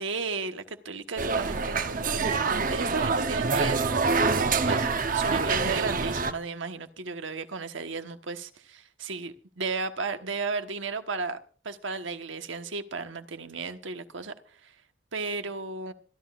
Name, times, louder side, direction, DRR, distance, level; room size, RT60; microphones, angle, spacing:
voice 1, 0.0-4.3 4.6-11.4 11.6-14.7 15.1-15.9, right 4 dB, 85° right, 1.2 m, -34 dB
sound 1, 1.2-6.3, right 4 dB, 45° right, 0.8 m, -26 dB
26.5 x 11.5 x 2.4 m
head